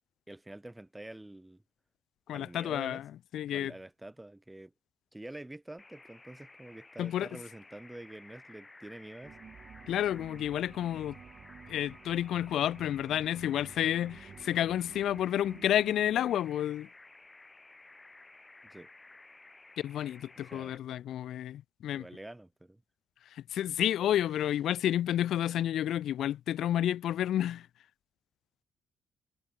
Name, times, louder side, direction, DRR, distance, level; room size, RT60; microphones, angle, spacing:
voice 1, 0.3-1.6 2.3-3.0 3.5-4.7 5.1-9.4 18.6-18.9 20.4-20.7 21.9-22.8, right 1 dB, 10° right, 2.7 m, -47 dB
voice 2, 2.3-3.7 7.0-7.3 9.9-11.2 11.7-16.9 19.8-22.0 23.3-27.7, left 11 dB, 75° left, 0.4 m, -30 dB
sound 1, 5.8-20.8, left 2 dB, 20° left, 5.4 m, -55 dB
sound 2, 9.2-16.4, right 7 dB, 50° right, 3.0 m, -52 dB
cardioid pair, 90°, 0 cm